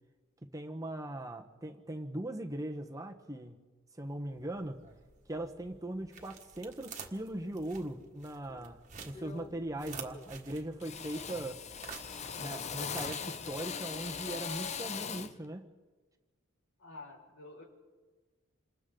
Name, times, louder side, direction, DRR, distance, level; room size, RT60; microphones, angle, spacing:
voice 1, 0.4-3.6 4.0-4.8 5.3-8.8 9.1-11.6 12.4-15.7, right 1 dB, 15° right, 4 dB, 1.2 m, -40 dB
sound 1, 4.1-15.1, right 5 dB, 35° right, 1.7 m, -51 dB
Drill, 8.5-8.7 9.1-9.6 9.9-10.5 10.8-15.4, left 6 dB, 30° left, 0.6 m, -40 dB
voice 2, 16.8-17.6, left 2 dB, 85° left, -1 dB, 5.6 m, -49 dB
28.0 x 27.0 x 3.9 m, 1.4 s
head